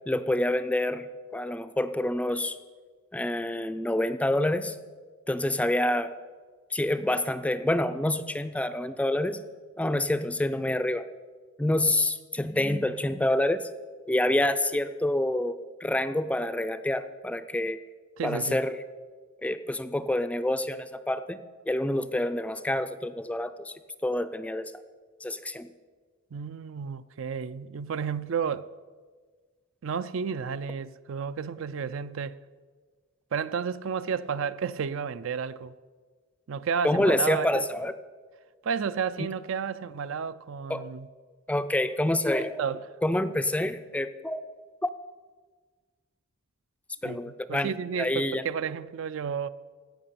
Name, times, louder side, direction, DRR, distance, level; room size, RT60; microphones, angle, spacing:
voice 1, 0.1-2.6 3.1-4.8 5.3-6.1 6.7-9.4 9.8-11.1 11.6-13.6 14.1-17.8 18.2-18.8 19.4-23.7 24.0-24.7 25.2-25.7 36.8-37.9 40.7-40.8 41.5-42.6 43.0-44.4 44.8-44.9 47.0-47.7 48.0-48.4, left 1 dB, 5° left, 0.4 m, -27 dB
voice 2, 18.2-18.6 26.3-28.7 29.8-32.4 33.3-35.7 36.5-37.7 38.6-41.1 42.3-42.8 47.1-49.5, right 6 dB, 65° right, 0.4 m, -32 dB
16.5 x 5.8 x 6.9 m
head